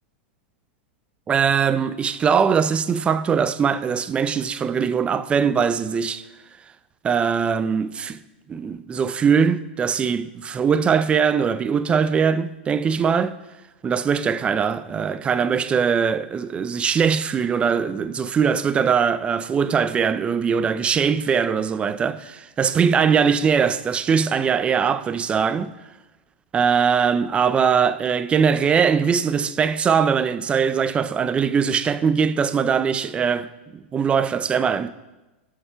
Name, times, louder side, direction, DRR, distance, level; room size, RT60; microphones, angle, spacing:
voice 1, 1.3-6.2 7.0-8.2 8.5-13.3 13.8-25.7 26.5-33.5 33.7-34.9, right 6 dB, 20° right, 0.5 m, -21 dB
16.5 x 6.7 x 5.6 m
supercardioid pair, 130°, 6 cm